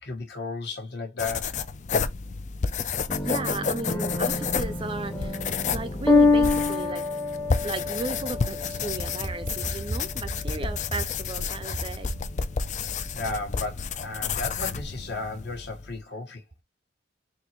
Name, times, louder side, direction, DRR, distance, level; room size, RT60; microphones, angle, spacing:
voice 1, 0.0-1.6 13.1-16.4, left 3 dB, 60° left, 1.3 m, -34 dB
sound 1, 1.2-16.0, left 5 dB, 40° left, 0.4 m, -31 dB
sound 2, 3.1-12.1, left 3 dB, 10° left, 0.7 m, -27 dB
voice 2, 3.2-5.4 5.7-7.1 7.6-12.1, right 2 dB, 25° right, 0.5 m, -34 dB
4.3 x 2.9 x 2.9 m
head